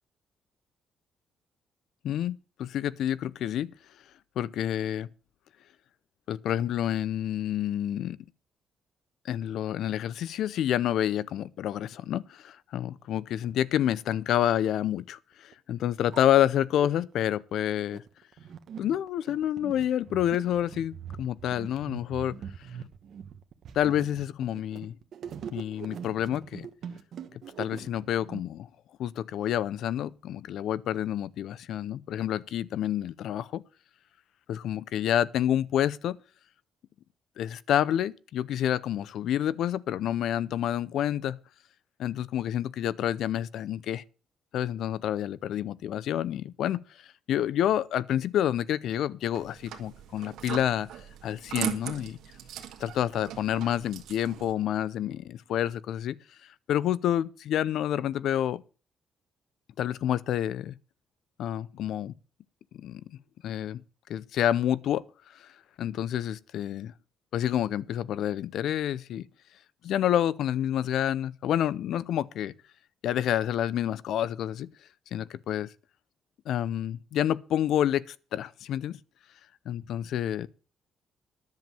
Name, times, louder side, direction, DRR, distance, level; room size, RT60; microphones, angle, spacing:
voice 1, 2.0-3.7 4.4-5.1 6.3-8.2 9.2-18.0 18.8-22.4 23.7-25.0 25.5-26.7 27.6-28.7 29.0-33.6 34.5-36.2 37.4-41.4 42.0-44.0 44.5-46.8 47.3-50.9 51.2-52.2 52.8-56.2 56.7-58.6 59.8-60.7 61.4-62.1 62.7-63.0 63.4-63.8 64.1-65.0 65.3-65.5 65.8-66.9 67.3-69.3 69.8-72.5 73.0-74.7 75.1-75.7 76.5-79.0 79.7-80.5, left 11 dB, 75° left, 0.6 m, -28 dB
sound 1, 15.5-15.6 15.9-16.9 17.5-28.4, right 8 dB, 65° right, 1.3 m, -42 dB
sound 2, 49.3-54.5, right 11 dB, 85° right, 1.7 m, -39 dB
10.5 x 7.3 x 7.6 m
cardioid pair, 90°, 0 cm